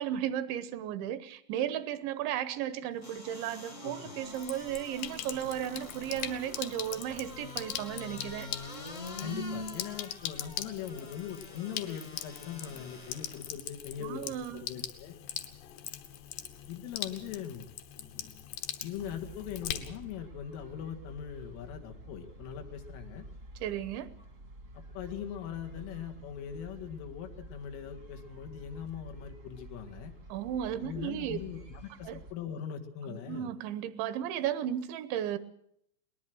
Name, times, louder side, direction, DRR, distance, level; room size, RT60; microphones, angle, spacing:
voice 1, 0.0-8.5 14.0-14.6 23.6-24.1 30.3-31.4 32.1-32.2 33.1-35.4, right 10 dB, 75° right, 14 dB, 3.1 m, -35 dB
sound 1, 3.0-13.5 14.0-14.1, left 2 dB, 40° left, 1.1 m, -45 dB
voice 2, 3.8-4.1 9.2-15.2 16.7-17.7 18.8-23.2 24.7-30.1 30.8-33.5, left 9 dB, 90° left, 4 dB, 4.5 m, -41 dB
Sink (filling or washing), 4.2-20.2, left 11 dB, 70° left, 3.1 m, -42 dB
sound 2, 18.9-32.3, right 1 dB, 40° right, 1.1 m, -50 dB
22.0 x 19.5 x 6.3 m, 0.70 s
omnidirectional pair, 5.6 m